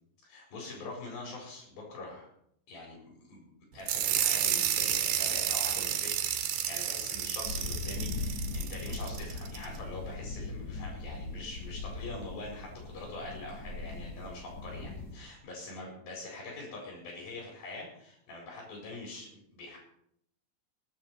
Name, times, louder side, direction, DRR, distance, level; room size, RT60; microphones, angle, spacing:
voice 1, 0.2-2.3 2.7-19.8, left 2 dB, 85° left, -2 dB, 5.7 m, -44 dB
sound 1, 3.9-9.7, right 10 dB, 85° right, 2.9 m, -31 dB
sound 2, 7.4-15.1, left 3 dB, 25° left, 4.7 m, -39 dB
20.5 x 9.1 x 4.4 m, 0.72 s
omnidirectional pair, 4.1 m